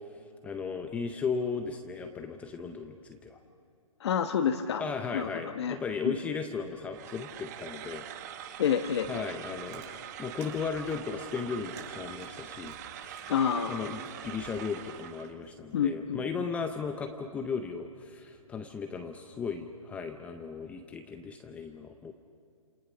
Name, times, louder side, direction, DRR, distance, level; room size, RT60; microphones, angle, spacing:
voice 1, 0.4-3.4 4.8-8.1 9.1-13.3 13.7-22.1, left 5 dB, 5° left, 6 dB, 0.6 m, -36 dB
voice 2, 4.0-4.8 5.1-5.8 6.0-6.2 8.6-9.3 13.3-13.9 15.7-16.4, left 8 dB, 50° left, 6 dB, 1.2 m, -29 dB
sound 1, 6.9-15.4, right 10 dB, 30° right, 1.0 m, -44 dB
Chewing mastication, 9.4-15.8, right 5 dB, 50° right, 6.2 m, -55 dB
29.5 x 28.0 x 6.2 m, 2.2 s
hypercardioid pair, 160°, 18 cm